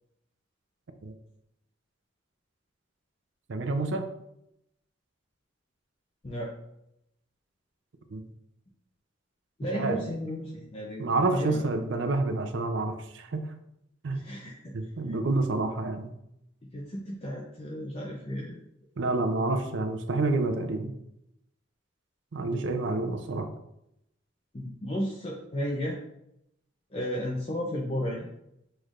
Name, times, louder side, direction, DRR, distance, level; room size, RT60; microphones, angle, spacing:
voice 1, 3.5-4.0 8.1-8.2 9.7-10.0 11.0-13.4 14.0-14.2 14.7-16.1 19.0-20.9 22.3-23.5, right 2 dB, 70° right, 6 dB, 0.5 m, -28 dB
voice 2, 9.6-11.6 14.1-14.7 16.7-18.6 24.5-26.0 26.9-28.3, equal, 30° left, -2 dB, 0.5 m, -33 dB
6.2 x 3.3 x 2.4 m, 0.80 s
head